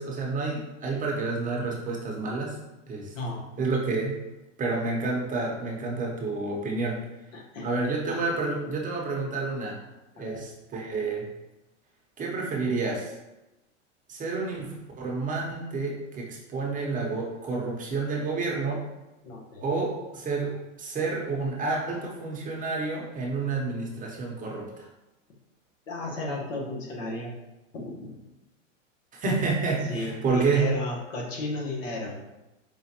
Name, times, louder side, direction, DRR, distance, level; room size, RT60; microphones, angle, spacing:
voice 1, 0.0-2.6 2.9-3.1 3.6-4.2 4.6-7.0 7.6-9.8 10.1-11.3 12.2-13.1 14.1-18.8 19.6-24.7 29.1-30.7, right 3 dB, 20° right, -1 dB, 0.8 m, -29 dB
voice 2, 3.1-3.5 7.3-7.7 10.2-10.5 19.2-19.8 25.9-27.3 27.7-28.2 29.9-32.2, left 2 dB, 85° left, -2 dB, 1.3 m, -34 dB
5.0 x 2.5 x 2.8 m, 1.0 s
hypercardioid pair, 120°, 38 cm